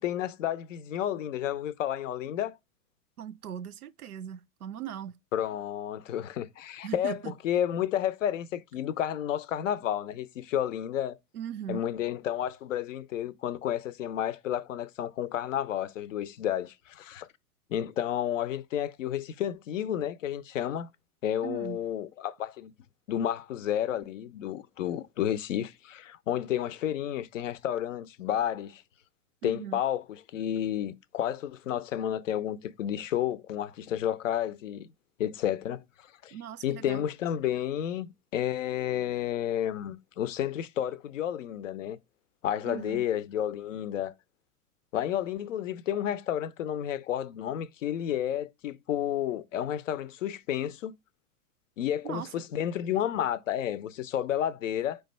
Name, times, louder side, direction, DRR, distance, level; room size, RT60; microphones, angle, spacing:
voice 1, 0.0-2.6 5.3-11.2 11.7-17.3 17.7-20.9 21.2-22.7 23.1-28.8 29.4-34.9 35.2-35.8 36.2-36.4 36.6-42.0 42.4-44.1 44.9-50.9 51.8-55.0, left 10 dB, 55° left, 0.5 m, -31 dB
voice 2, 3.2-5.2 6.8-7.3 11.3-11.8 21.4-21.8 29.4-29.8 36.3-37.0 42.6-43.0 52.0-52.3, right 9 dB, 70° right, 0.6 m, -39 dB
4.9 x 2.2 x 4.2 m
figure-of-eight pair, 100°, 45 cm